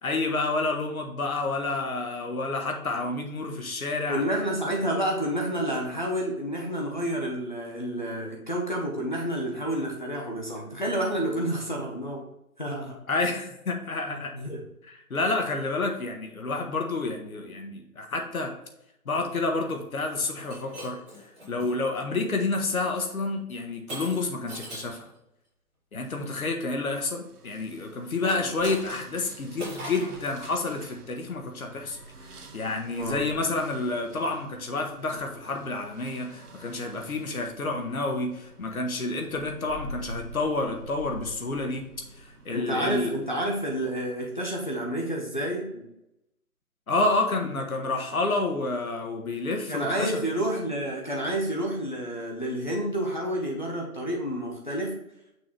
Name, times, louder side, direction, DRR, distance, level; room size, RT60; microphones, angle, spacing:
voice 1, 0.0-4.2 13.1-14.3 14.9-18.5 19.0-21.0 21.5-25.1 25.9-32.0 32.5-41.8 42.2-43.1 46.9-50.2, left 3 dB, 70° left, 3 dB, 1.4 m, -29 dB
voice 2, 4.1-12.3 12.6-13.0 14.1-14.6 28.2-28.5 32.9-33.4 42.5-45.8 47.7-47.8 49.7-55.0, right 1 dB, 35° left, -2 dB, 0.8 m, -29 dB
Shatter, 20.3-21.7 22.4-22.7 23.9-25.0 28.2-29.2 29.6-30.2, equal, 5° right, 1.6 m, -39 dB
sound 1, 27.2-44.3, right 1 dB, 85° right, 1.4 m, -47 dB
6.1 x 3.8 x 4.5 m, 0.83 s
hypercardioid pair, 180°, 45 cm